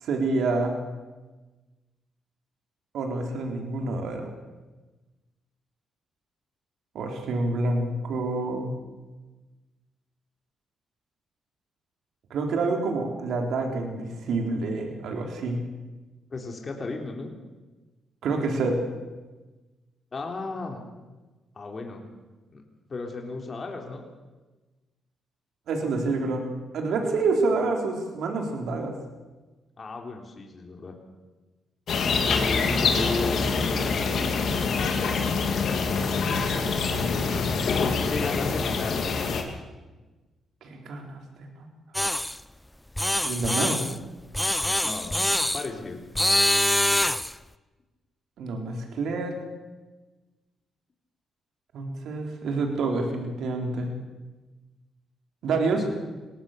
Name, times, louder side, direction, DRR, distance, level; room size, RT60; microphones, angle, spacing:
voice 1, 0.0-0.8 2.9-4.3 6.9-8.7 12.3-15.6 18.2-18.8 25.7-29.0 40.6-41.7 43.2-43.9 48.4-49.4 51.7-53.9 55.4-55.8, right 3 dB, 75° right, 3 dB, 4.0 m, -28 dB
voice 2, 16.3-17.3 20.1-20.8 21.6-22.0 22.5-22.6 22.9-24.0 29.8-30.9 32.2-34.5 38.1-39.1 44.8-46.0 55.7-55.8, left 3 dB, 40° left, 2 dB, 3.6 m, -34 dB
sound 1, 31.9-39.4, left 4 dB, 65° left, 3.1 m, -25 dB
sound 2, 41.9-42.4 43.0-44.0 44.3-45.7 46.1-47.3, left 1 dB, 10° left, 0.7 m, -24 dB
22.5 x 18.5 x 6.8 m, 1.2 s
supercardioid pair, 65°, 0 cm